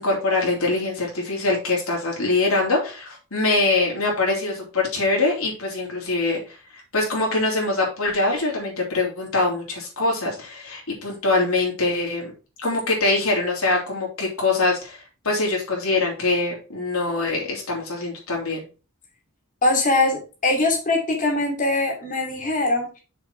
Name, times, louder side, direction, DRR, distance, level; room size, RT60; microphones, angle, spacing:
voice 1, 0.0-12.3 12.6-18.6, left 2 dB, 75° left, -2 dB, 3.3 m, -23 dB
voice 2, 19.6-23.0, left 2 dB, 40° left, 1 dB, 2.7 m, -22 dB
6.5 x 5.8 x 4.5 m, 0.34 s
head